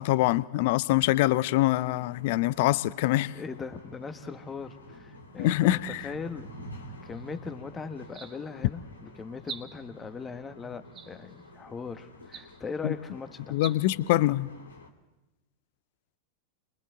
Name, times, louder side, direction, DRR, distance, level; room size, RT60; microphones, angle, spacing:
voice 1, 0.0-3.3 5.4-6.0 12.8-12.9 13.5-14.5, left 16 dB, 50° left, 19 dB, 0.6 m, -24 dB
sound 1, 0.8-14.9, equal, 75° left, 2.5 m, -49 dB
voice 2, 3.3-6.7 7.0-13.6, left 5 dB, 15° left, 9 dB, 1.3 m, -39 dB
sound 2, 7.1-7.4 8.0-8.7 9.4-10.0 10.9-11.5 12.2-12.8 13.5-13.8, right 6 dB, 25° right, 1.4 m, -45 dB
30.0 x 23.0 x 3.8 m, 1.1 s
figure-of-eight pair, 90°, 0 cm